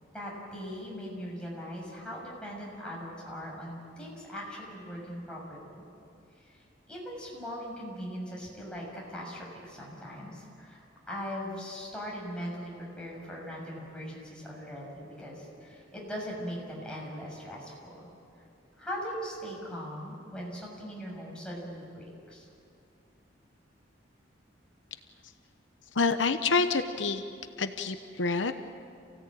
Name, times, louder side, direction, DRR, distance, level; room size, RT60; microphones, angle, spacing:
voice 1, 0.1-5.9 6.4-18.1 18.8-22.5, equal, 5° left, -4 dB, 6.8 m, -40 dB
voice 2, 25.9-27.2 27.6-28.5, left 4 dB, 85° left, 8 dB, 1.0 m, -27 dB
28.5 x 17.0 x 8.9 m, 2.5 s
head